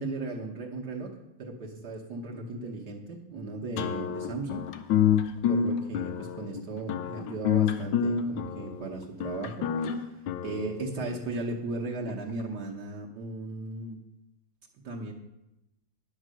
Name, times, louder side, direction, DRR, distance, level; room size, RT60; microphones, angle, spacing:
voice 1, 0.0-4.7 5.5-10.1 10.4-14.0 14.8-15.1, right 3 dB, 60° right, -1 dB, 1.6 m, -36 dB
sound 1, 3.8-11.2, left 8 dB, 90° left, 1.5 m, -28 dB
10.0 x 6.5 x 6.2 m, 0.94 s
omnidirectional pair, 2.1 m